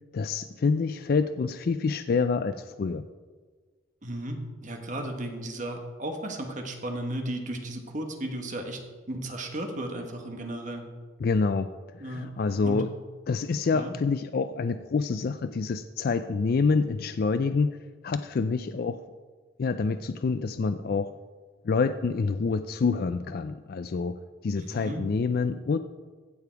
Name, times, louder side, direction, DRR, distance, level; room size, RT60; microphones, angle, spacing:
voice 1, 0.1-3.1 11.2-11.7 11.9-12.9 13.3-17.8 18.0-19.0 19.6-21.1 21.7-24.1 24.4-25.8, left 4 dB, 45° left, 10 dB, 0.3 m, -27 dB
voice 2, 4.0-8.8 9.1-10.9 12.0-12.3 12.6-12.8 13.7-13.9 24.6-25.0, right 1 dB, 40° right, 4 dB, 1.4 m, -34 dB
15.5 x 6.9 x 4.6 m, 1.4 s
head